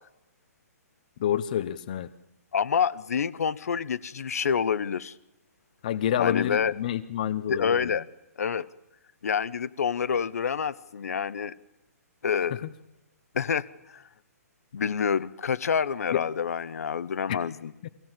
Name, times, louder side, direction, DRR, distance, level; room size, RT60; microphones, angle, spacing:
voice 1, 1.2-2.1 5.8-7.9 16.1-16.2 17.3-17.4 17.8-17.9, left 10 dB, 30° left, 10 dB, 0.7 m, -28 dB
voice 2, 2.5-5.1 6.2-6.7 7.5-8.1 8.4-8.7 9.2-11.5 12.2-12.7 13.3-14.0 14.7-17.7, left 7 dB, 65° left, 15 dB, 0.9 m, -27 dB
23.5 x 17.0 x 7.4 m, 0.95 s
hypercardioid pair, 175°, 9 cm